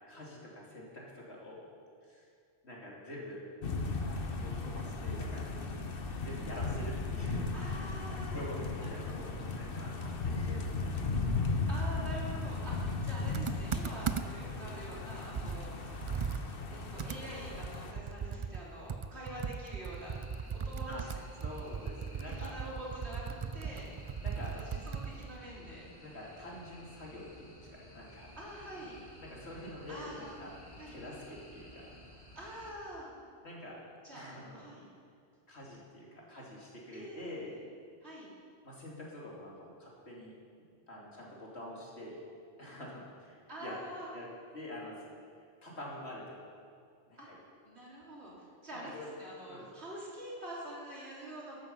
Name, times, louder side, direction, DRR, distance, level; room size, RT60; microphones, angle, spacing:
voice 1, 0.1-1.7 2.0-2.2 2.6-3.4 4.0-5.4 6.2-7.5 8.3-11.5 20.9-21.0 21.4-22.6 24.2-24.6 26.0-28.3 29.2-30.5 30.9-31.9 33.4-33.8 34.1-34.7 35.5-37.5 38.6-40.3 40.9-42.2 42.6-43.7 44.1-44.3 44.5-45.0 45.6-46.5 47.1-47.4 49.0-49.1 49.5-49.6, left 1 dB, 90° left, -4 dB, 3.4 m, -46 dB
sound 1, 3.6-17.9, left 3 dB, 60° left, 1.2 m, -36 dB
voice 2, 7.5-8.4 8.8-9.3 11.7-16.3 16.7-20.1 20.5-21.1 22.3-23.3 23.5-23.9 24.4-25.9 28.4-29.0 29.9-30.4 30.8-31.0 32.4-33.1 34.0-34.3 34.5-34.8 36.9-37.6 38.0-38.3 43.5-44.1 47.2-47.3 47.6-48.3 48.6-51.6, right 1 dB, 85° right, -5 dB, 3.8 m, -46 dB
Computer keyboard, 13.3-14.5 14.9-15.0 15.3-18.6 18.9-25.4, right 6 dB, 50° right, 0.3 m, -38 dB
sound 2, 19.9-32.7, equal, 20° left, 2.2 m, -54 dB
15.0 x 11.5 x 5.6 m, 2.3 s
omnidirectional pair, 1.1 m